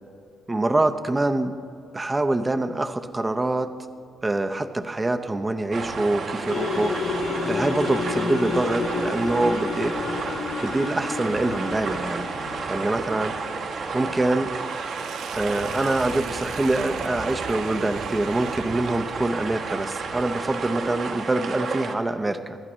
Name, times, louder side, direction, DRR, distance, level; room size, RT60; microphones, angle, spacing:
voice 1, 0.5-1.5 1.9-3.7 4.2-7.0 7.4-10.0 10.6-12.3 12.7-13.4 13.9-14.5 15.3-22.6, right 2 dB, 15° right, 8 dB, 0.6 m, -25 dB
sound 1, 5.7-21.9, right 4 dB, 60° right, 1.2 m, -32 dB
sound 2, 6.5-13.6, left 4 dB, 70° left, 1.1 m, -30 dB
Sink (filling or washing), 14.5-19.4, right 9 dB, 75° right, 0.5 m, -40 dB
23.5 x 11.0 x 3.1 m, 2.3 s
cardioid pair, 125°, 0 cm